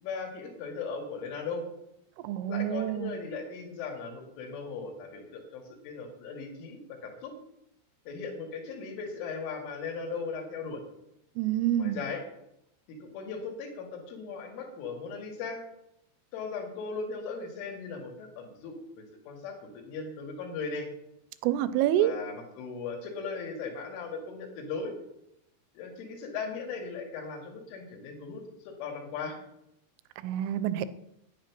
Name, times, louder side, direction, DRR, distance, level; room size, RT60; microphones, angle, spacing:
voice 1, 0.0-1.6 2.5-7.4 8.1-10.8 11.8-12.2 12.9-15.6 16.3-20.9 22.0-24.9 25.8-29.4, left 4 dB, 75° left, 3 dB, 4.5 m, -38 dB
voice 2, 2.2-3.1 11.4-12.0 21.4-22.1 30.2-30.9, right 12 dB, 85° right, 14 dB, 3.2 m, -27 dB
10.5 x 10.0 x 6.0 m, 0.81 s
omnidirectional pair, 5.7 m